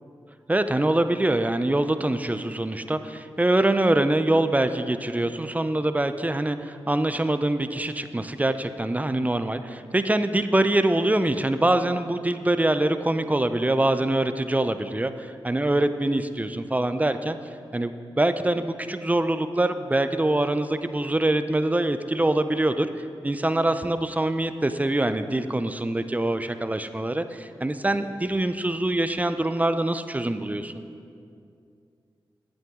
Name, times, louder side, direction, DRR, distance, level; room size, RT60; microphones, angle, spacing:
voice 1, 0.5-17.4 17.7-22.9 23.2-30.8, right 1 dB, 15° right, 10 dB, 0.5 m, -24 dB
8.9 x 8.7 x 3.7 m, 2.4 s
cardioid pair, 50°, 9 cm